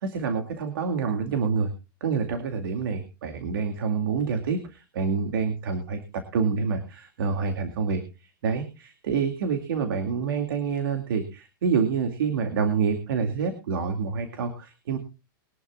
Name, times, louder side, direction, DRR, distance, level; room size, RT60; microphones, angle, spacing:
voice 1, 0.0-1.7 2.0-15.0, right 5 dB, 80° right, 6 dB, 2.4 m, -27 dB
22.0 x 11.5 x 2.4 m, 0.28 s
hypercardioid pair, 120°, 11 cm